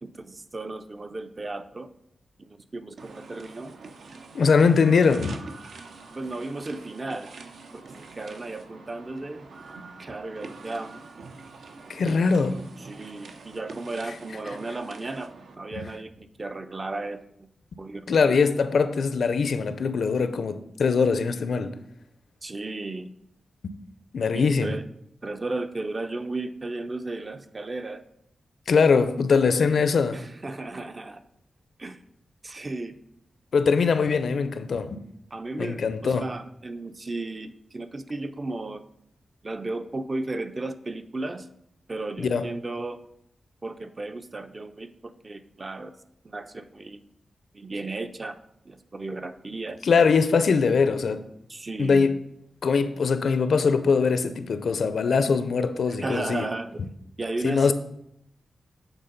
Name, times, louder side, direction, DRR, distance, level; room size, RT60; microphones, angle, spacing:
voice 1, 0.0-1.9 2.4-3.7 6.1-7.3 7.7-9.5 10.0-11.0 12.8-17.5 17.8-18.2 22.4-23.1 24.3-24.8 25.2-28.0 30.1-31.2 31.8-32.0 32.4-32.9 35.3-38.8 39.4-41.5 41.9-43.0 43.6-45.9 46.2-47.0 47.5-48.4 48.7-49.8 51.5-52.1 56.0-56.8 57.2-57.7, right 2 dB, 25° right, 0.4 m, -34 dB
sound 1, 3.0-15.5, right 3 dB, 85° right, 0.6 m, -45 dB
voice 2, 4.3-5.4 11.9-12.6 15.8-15.9 18.1-21.7 23.6-23.7 24.1-24.7 28.7-30.2 33.5-35.0 35.6-36.3 42.2-42.5 49.8-51.2 51.8-52.2 52.6-56.4 56.8-56.9 57.4-57.7, left 5 dB, 70° left, 0.5 m, -22 dB
8.0 x 3.8 x 5.2 m
wide cardioid pair, 180°, 0 cm